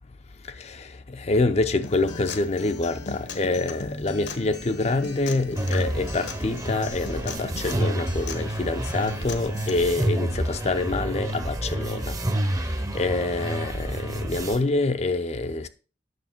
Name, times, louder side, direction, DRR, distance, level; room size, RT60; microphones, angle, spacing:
voice 1, 0.6-12.2 12.9-15.7, left 2 dB, 35° left, 0.5 m, -26 dB
Acoustic guitar, 1.8-9.8, left 3 dB, 70° left, 1.1 m, -39 dB
sound 1, 5.6-14.6, right 1 dB, 20° right, 0.7 m, -29 dB
9.3 x 6.7 x 4.4 m
head